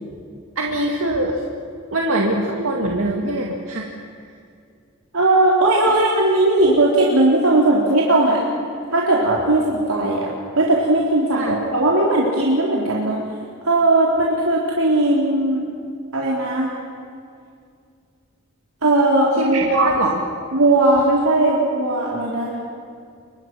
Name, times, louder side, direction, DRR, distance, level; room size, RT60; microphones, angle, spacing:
voice 1, 0.6-1.4 1.9-3.9 11.3-11.6 19.4-20.2, right 2 dB, 70° right, 0 dB, 2.2 m, -22 dB
voice 2, 5.1-8.4 8.9-10.3 10.6-13.2 13.7-15.7 16.1-16.7 18.8-20.0 20.5-22.6, right 2 dB, 90° right, -4 dB, 3.6 m, -18 dB
29.5 x 25.0 x 6.1 m, 2.3 s
head